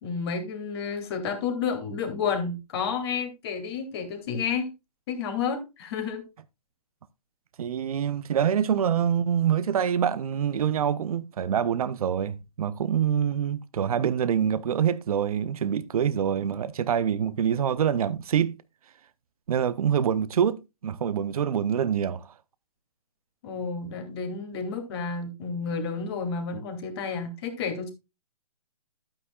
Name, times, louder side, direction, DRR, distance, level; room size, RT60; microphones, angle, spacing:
voice 1, 0.0-4.7 5.1-6.2 23.4-27.9, left 5 dB, 40° left, 2.4 m, -31 dB
voice 2, 7.6-18.6 19.5-22.3, right 8 dB, 65° right, 0.6 m, -25 dB
12.0 x 8.8 x 2.3 m
hypercardioid pair, 145°, 20 cm